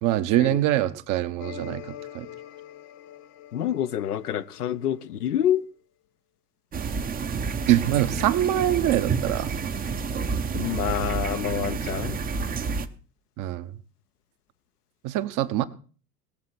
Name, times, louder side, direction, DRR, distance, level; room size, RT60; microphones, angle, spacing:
voice 1, 0.0-2.3 7.7-9.6 13.4-13.7 15.0-15.7, right 13 dB, 40° right, 1.1 m, -24 dB
sound 1, 1.4-5.3, left 11 dB, 35° left, 1.1 m, -44 dB
voice 2, 3.5-5.6 10.5-12.2, left 10 dB, 70° left, 0.9 m, -27 dB
sound 2, 6.7-12.9, right 5 dB, 20° right, 0.9 m, -29 dB
18.5 x 7.5 x 6.1 m
figure-of-eight pair, 75°, 47 cm